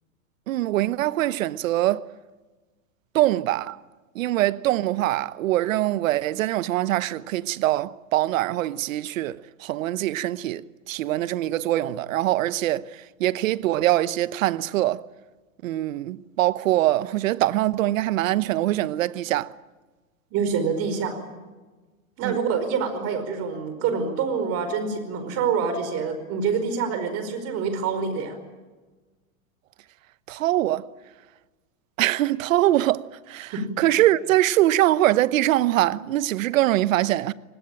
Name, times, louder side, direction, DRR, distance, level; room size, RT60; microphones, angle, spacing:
voice 1, 0.5-2.1 3.1-3.8 4.1-15.0 15.6-19.5 22.2-22.4 30.3-30.9 32.0-37.3, right 15 dB, 70° right, 1.0 m, -23 dB
voice 2, 20.3-21.2 22.2-28.4 33.5-33.6, right 6 dB, 35° right, 4.9 m, -26 dB
25.5 x 19.5 x 8.9 m
supercardioid pair, 140°, 41 cm